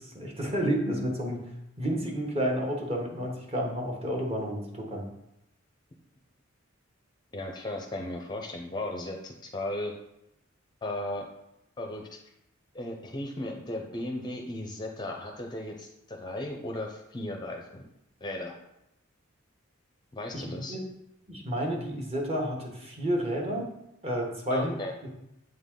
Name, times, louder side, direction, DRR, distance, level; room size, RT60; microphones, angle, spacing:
voice 1, 0.0-1.4 1.8-5.1 20.3-20.8 21.3-23.7 24.0-24.8 25.0-25.1, equal, 30° right, -1 dB, 1.2 m, -30 dB
voice 2, 7.3-10.0 10.8-11.3 11.8-12.1 12.7-17.8 18.2-18.6 20.1-20.8 24.5-24.9, left 1 dB, 20° left, 2 dB, 0.5 m, -36 dB
7.7 x 3.9 x 3.7 m, 0.84 s
head